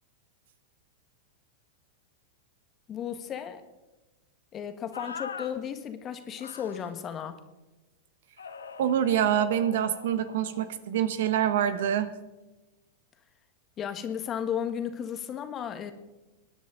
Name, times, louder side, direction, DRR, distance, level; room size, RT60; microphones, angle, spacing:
voice 1, 2.9-3.6 4.5-7.4 13.8-15.9, left 8 dB, 30° left, 8 dB, 1.5 m, -34 dB
sound 1, 4.9-5.5 6.4-6.9 8.4-10.7, left 6 dB, 85° left, 1.1 m, -42 dB
voice 2, 8.8-12.1, right 10 dB, 65° right, 12 dB, 1.1 m, -26 dB
24.0 x 10.0 x 3.9 m, 1.1 s
hypercardioid pair, 100°, 0 cm